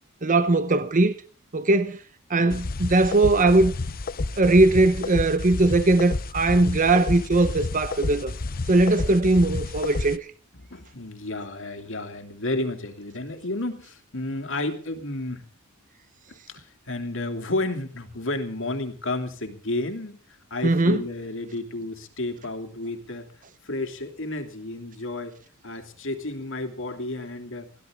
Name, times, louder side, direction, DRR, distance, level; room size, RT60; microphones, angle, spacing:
voice 1, 0.2-1.1 1.5-2.0 2.3-3.7 4.4-8.3 8.7-10.3 20.6-21.0, right 2 dB, 40° right, 0.9 m, -20 dB
sound 1, 2.5-10.2, left 3 dB, 45° left, 0.7 m, -31 dB
voice 2, 10.6-15.5 16.5-23.3 23.6-25.4 25.6-27.7, left 2 dB, 65° left, 2.8 m, -32 dB
21.5 x 16.0 x 3.7 m
head